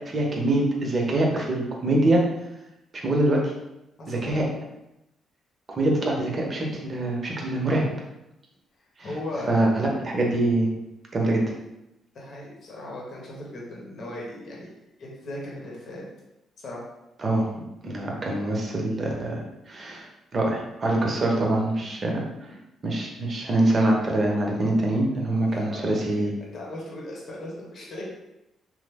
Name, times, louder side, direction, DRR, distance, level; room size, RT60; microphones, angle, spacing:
voice 1, 0.1-2.3 3.0-3.5 4.1-4.5 5.8-8.0 9.0-9.1 9.5-10.7 11.1-11.4 17.2-17.5 17.8-20.1 20.3-22.3 22.8-26.3, right 1 dB, 35° right, -1 dB, 0.7 m, -24 dB
voice 2, 4.0-4.4 9.0-9.7 12.1-14.7 15.0-16.0 16.6-16.9 25.5-26.3 26.5-28.0, left 1 dB, 55° left, -3 dB, 0.8 m, -37 dB
3.1 x 2.0 x 3.4 m, 0.90 s
cardioid pair, 90°, 0 cm